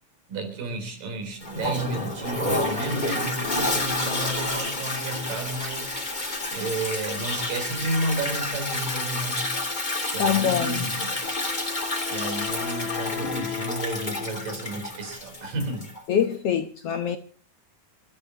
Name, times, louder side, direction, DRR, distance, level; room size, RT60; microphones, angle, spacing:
voice 1, 0.3-6.0 6.5-9.6 10.1-11.2 12.1-15.9, right 2 dB, 75° right, 5.6 m, -32 dB
Toilet flush, 1.4-16.0, left 2 dB, 15° left, 2.4 m, -29 dB
voice 2, 10.2-10.9 16.1-17.2, left 9 dB, 65° left, 1.6 m, -24 dB
Wind instrument woodwind instrument, 11.2-14.8, left 11 dB, 90° left, 2.8 m, -36 dB
28.0 x 13.5 x 2.9 m
omnidirectional pair, 3.9 m